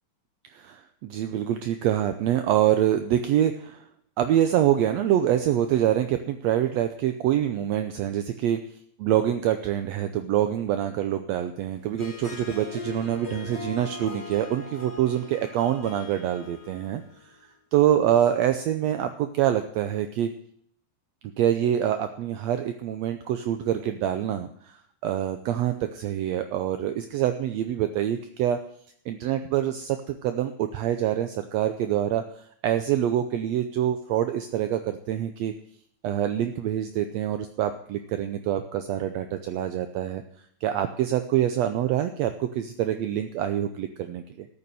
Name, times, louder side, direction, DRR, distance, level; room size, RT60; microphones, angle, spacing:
voice 1, 0.5-3.9 4.2-8.6 9.0-17.3 17.7-20.3 21.4-24.8 25.0-28.6 29.1-35.5 36.0-40.2 40.6-44.5, right 11 dB, 75° right, 8 dB, 1.7 m, -25 dB
Harp, 11.8-17.3, left 5 dB, 25° left, 1.7 m, -40 dB
13.5 x 6.9 x 9.0 m, 0.67 s
omnidirectional pair, 3.5 m